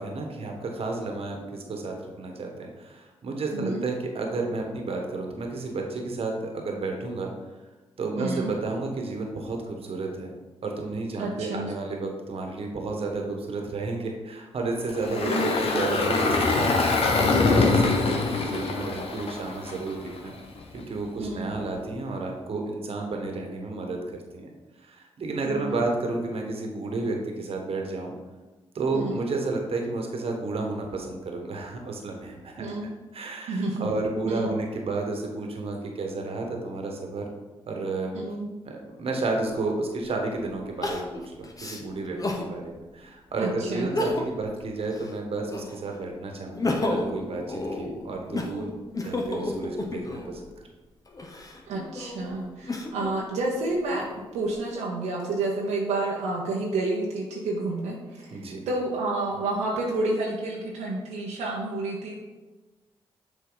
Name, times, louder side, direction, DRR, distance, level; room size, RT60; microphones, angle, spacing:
voice 1, 0.0-7.3 8.0-10.3 10.6-16.7 17.2-20.3 20.7-24.0 24.3-24.5 24.8-28.1 28.7-32.8 33.1-37.2 37.7-38.1 38.6-50.4 58.3-58.6, right 3 dB, 60° right, 2 dB, 1.3 m, -32 dB
voice 2, 3.5-3.8 8.1-8.5 11.2-11.7 15.2-15.5 21.2-21.5 25.4-25.7 28.9-29.2 32.6-32.9 33.5-33.9 34.2-34.5 38.1-38.5 43.4-43.9 51.7-54.0 54.3-62.2, right 2 dB, 85° right, -3 dB, 0.9 m, -30 dB
Engine, 14.9-20.2, left 3 dB, 60° left, 1.0 m, -24 dB
Crying sobbing, 40.8-42.5 43.0-43.1 43.8-44.5 44.9-45.9 46.4-50.4 51.1-53.1 53.7-54.5, left 2 dB, 30° left, 1.1 m, -32 dB
7.0 x 4.1 x 4.0 m, 1.2 s
supercardioid pair, 55°, 11 cm